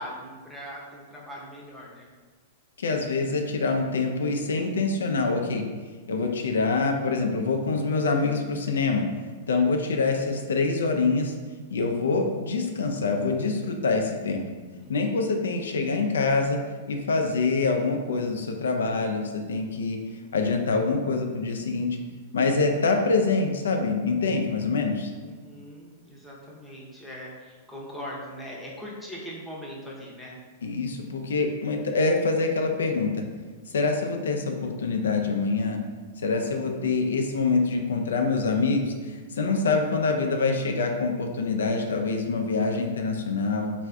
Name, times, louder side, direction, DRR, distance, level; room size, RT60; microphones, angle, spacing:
voice 1, 0.0-2.1 14.8-15.3 19.9-20.3 25.2-30.4 36.7-37.3, equal, ahead, -5 dB, 0.6 m, -41 dB
voice 2, 2.8-5.6 6.1-9.0 9.5-11.3 11.7-14.4 14.9-16.6 16.9-20.0 20.3-21.9 22.3-25.1 30.6-33.2 33.7-35.8 36.2-43.7, left 3 dB, 85° left, 3 dB, 0.3 m, -25 dB
3.3 x 2.4 x 2.2 m, 1.4 s
hypercardioid pair, 125°, 0 cm